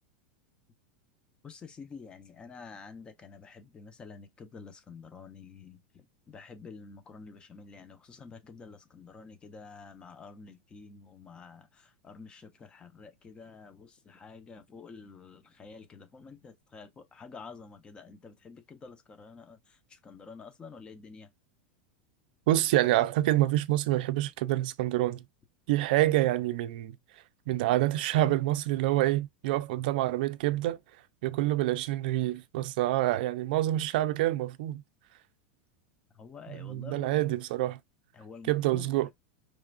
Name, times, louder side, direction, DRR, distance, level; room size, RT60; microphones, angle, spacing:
voice 1, 1.4-21.3 36.1-37.1 38.1-39.1, left 5 dB, 15° left, 0.9 m, -49 dB
voice 2, 22.5-25.2 25.7-27.0 27.5-30.8 31.2-34.8 36.6-37.8 38.5-39.1, right 15 dB, 65° right, 0.6 m, -27 dB
4.8 x 3.3 x 2.4 m
supercardioid pair, 150°, 5 cm